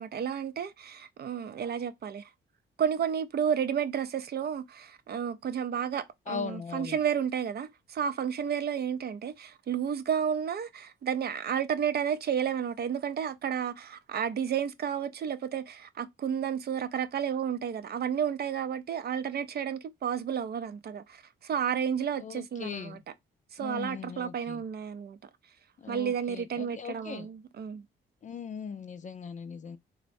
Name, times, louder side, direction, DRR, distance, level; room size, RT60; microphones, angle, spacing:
voice 1, 0.0-2.3 2.8-23.0 23.5-25.2 25.9-27.8, right 8 dB, 50° right, 0.5 m, -32 dB
voice 2, 6.3-7.0 22.2-23.0 23.6-24.6 25.8-27.3 28.2-29.8, left 6 dB, 35° left, 0.4 m, -39 dB
3.1 x 2.1 x 2.5 m
cardioid pair, 70°, 21 cm